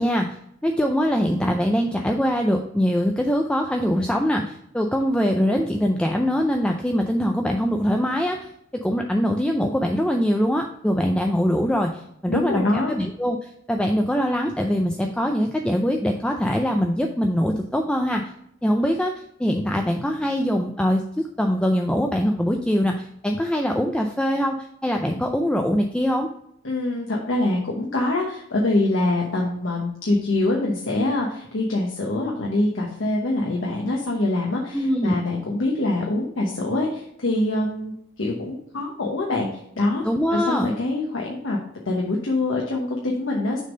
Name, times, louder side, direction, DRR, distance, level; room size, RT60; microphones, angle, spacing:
voice 1, 0.0-8.5 8.8-18.2 18.6-26.3 34.7-35.2 40.0-40.7, equal, 5° left, 2 dB, 0.4 m, -23 dB
voice 2, 12.3-13.0 26.6-39.5 39.8-40.0 40.3-41.6 41.9-43.6, left 2 dB, 85° left, -1 dB, 1.1 m, -24 dB
6.4 x 3.7 x 5.1 m, 0.74 s
head